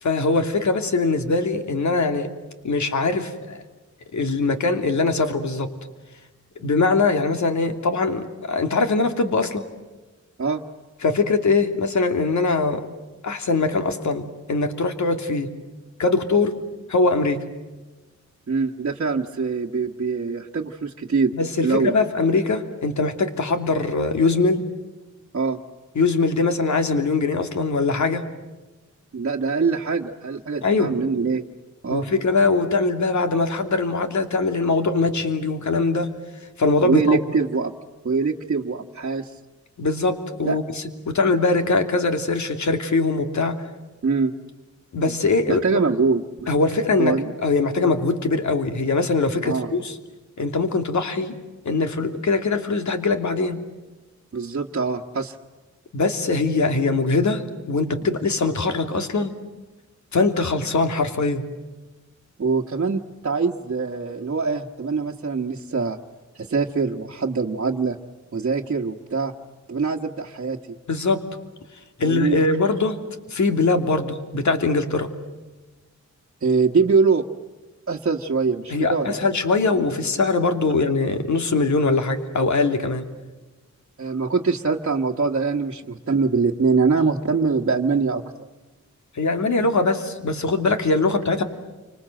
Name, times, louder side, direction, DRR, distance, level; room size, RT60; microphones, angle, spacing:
voice 1, 0.0-2.3 2.6-3.6 4.1-5.7 6.6-9.6 11.0-12.9 13.2-15.5 16.0-16.6 16.9-17.4 21.3-24.6 25.9-28.3 30.6-31.0 31.9-36.1 36.6-37.2 39.8-43.6 44.9-45.6 46.5-49.9 50.4-51.3 51.6-53.6 55.9-59.4 60.1-61.5 70.9-71.2 72.0-73.0 73.3-75.1 78.7-83.0 89.1-91.4, left 3 dB, 70° left, 7 dB, 2.8 m, -22 dB
voice 2, 18.5-21.3 21.6-22.0 25.3-25.6 29.1-31.4 31.8-32.1 36.8-37.7 38.0-39.3 40.4-40.6 44.0-44.3 45.1-45.2 45.5-46.5 47.0-47.3 49.4-49.7 54.3-55.3 62.4-66.0 66.3-68.0 68.3-69.3 69.7-70.8 72.0-72.4 76.4-77.3 77.9-79.4 84.0-88.5, right 4 dB, 50° right, 0 dB, 1.5 m, -23 dB
29.0 x 26.0 x 7.8 m, 1.2 s
wide cardioid pair, 130°, 30 cm